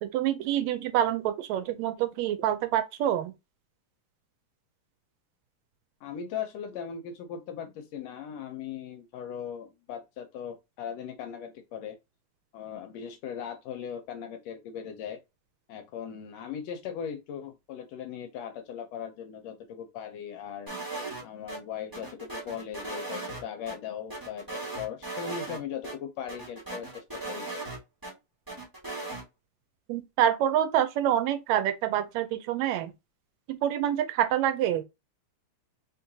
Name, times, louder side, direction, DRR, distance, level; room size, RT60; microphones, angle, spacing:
voice 1, 0.0-3.3 29.9-32.9 33.5-34.8, right 11 dB, 80° right, 1.7 m, -27 dB
voice 2, 6.0-12.0 12.5-15.2 15.7-20.7 21.2-27.5, left 8 dB, 75° left, 1.6 m, -39 dB
sound 1, 20.7-21.6 21.9-23.7 24.1-25.6 25.8-25.9 26.3-28.1 28.5-29.2, right 2 dB, 25° right, 0.4 m, -37 dB
4.3 x 3.7 x 2.6 m
omnidirectional pair, 3.4 m